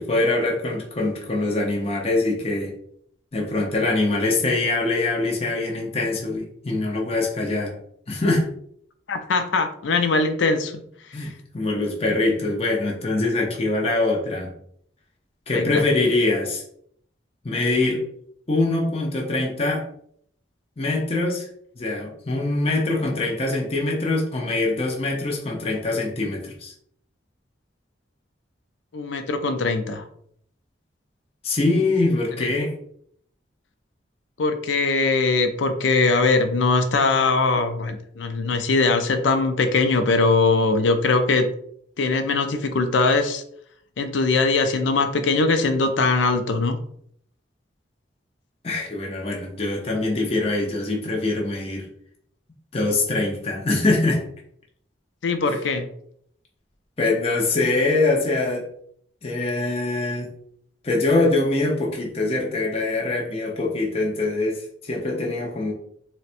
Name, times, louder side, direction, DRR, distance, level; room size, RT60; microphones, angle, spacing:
voice 1, 0.0-2.8 3.3-7.8 8.1-8.5 11.1-14.5 15.5-16.6 17.4-18.0 18.5-19.9 20.8-21.5 21.8-26.7 31.4-32.8 48.6-51.9 52.7-54.2 55.5-55.6 57.0-58.7 59.2-60.3 60.8-65.7, left 2 dB, 30° left, -1 dB, 0.6 m, -23 dB
voice 2, 9.1-10.8 15.5-15.8 28.9-30.0 32.4-32.5 34.4-41.5 42.0-43.4 44.0-46.8 55.2-55.9, left 3 dB, 80° left, 7 dB, 0.4 m, -21 dB
4.1 x 2.1 x 2.5 m, 0.65 s
head